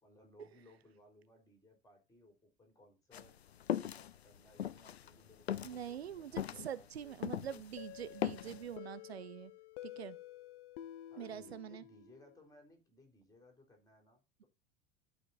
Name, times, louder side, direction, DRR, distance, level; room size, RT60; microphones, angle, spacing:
voice 1, 0.0-3.4 3.8-7.6 11.1-14.5, left 1 dB, 10° left, 4.0 m, -63 dB
sound 1, 3.1-7.7 8.0-8.6, left 10 dB, 80° left, 0.5 m, -39 dB
voice 2, 5.6-9.5 9.8-10.2 11.2-11.8, right 9 dB, 80° right, 0.6 m, -45 dB
sound 2, 7.8-12.4, left 13 dB, 50° left, 0.8 m, -51 dB
11.5 x 5.2 x 4.2 m
figure-of-eight pair, 75°, 31 cm